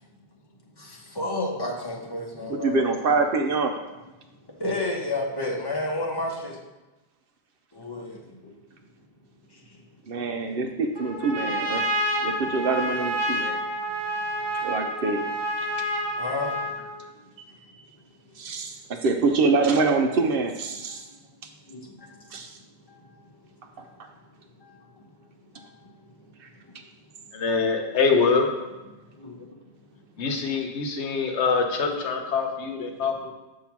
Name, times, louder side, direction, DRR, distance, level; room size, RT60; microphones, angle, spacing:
voice 1, 0.8-2.8 4.5-6.6 7.7-8.5 9.5-9.8 16.1-17.2 21.7-22.3 22.9-23.4 23.7-24.1 24.6-25.1 25.5-26.3 26.6-26.8 29.2-29.3 30.1-30.2 31.9-32.0, left 2 dB, 25° left, -2 dB, 0.9 m, -33 dB
voice 2, 2.5-4.0 10.1-12.0 12.2-13.6 14.5-15.2 17.6-17.8 18.4-21.1 22.3-22.6 23.8-23.9 26.4-26.5, right 3 dB, 65° right, 5 dB, 0.7 m, -25 dB
Trumpet, 10.9-16.9, equal, 25° right, 0.8 m, -28 dB
voice 3, 27.3-28.5 30.2-33.3, left 4 dB, 85° left, 4 dB, 1.1 m, -24 dB
7.0 x 2.8 x 5.8 m, 1.1 s
omnidirectional pair, 1.1 m